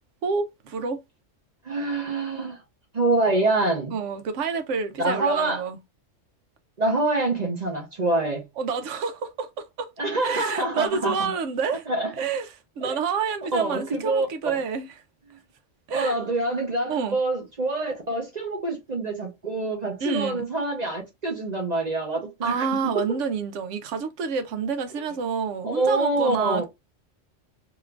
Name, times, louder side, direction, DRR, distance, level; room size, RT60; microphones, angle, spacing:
voice 1, 0.2-1.0 3.9-5.8 8.6-9.9 10.2-11.8 12.1-15.0 15.9-16.2 16.9-17.2 20.0-20.5 22.4-26.7, right 5 dB, 75° right, 1.0 m, -28 dB
voice 2, 1.6-2.6 2.9-3.9 5.0-5.6 6.8-8.5 10.0-11.3 11.9-12.1 12.8-13.0 13.5-14.3 15.3-15.4 15.9-23.2 25.6-26.7, right 2 dB, 40° right, 0.7 m, -26 dB
2.9 x 2.4 x 3.1 m
omnidirectional pair, 1.3 m